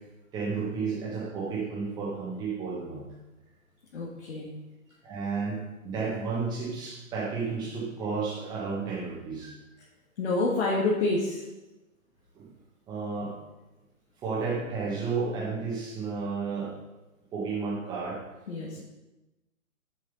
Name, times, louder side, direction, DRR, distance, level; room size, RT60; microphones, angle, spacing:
voice 1, 0.3-3.1 5.0-5.6 5.8-9.5 12.3-12.5 12.9-13.3 14.2-16.7 17.3-18.2, right 4 dB, 10° right, -5 dB, 1.5 m, -32 dB
voice 2, 3.9-4.5 10.2-11.4 18.5-18.8, left 2 dB, 50° left, -3 dB, 1.8 m, -28 dB
7.1 x 6.3 x 5.5 m, 1.0 s
hypercardioid pair, 155°, 42 cm